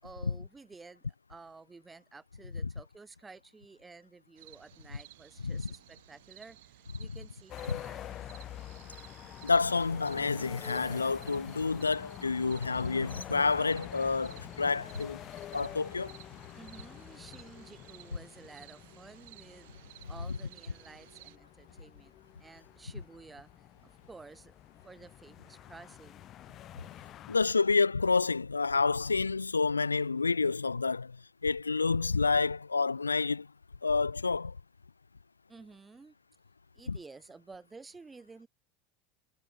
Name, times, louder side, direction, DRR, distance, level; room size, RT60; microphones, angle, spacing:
voice 1, 0.0-8.2 16.5-19.7 20.1-22.1 22.4-24.6 24.8-26.3 35.5-36.1 36.7-38.5, right 4 dB, 15° right, 7.6 m, -52 dB
sound 1, 4.4-21.4, right 19 dB, 65° right, 2.4 m, -56 dB
sound 2, 7.5-27.4, left 12 dB, 40° left, 6.2 m, -47 dB
voice 2, 9.4-15.2 15.5-16.1 27.3-31.2 31.4-33.5 33.8-34.6 36.9-37.0, left 4 dB, 90° left, 0.7 m, -29 dB
figure-of-eight pair, 80°, 0 cm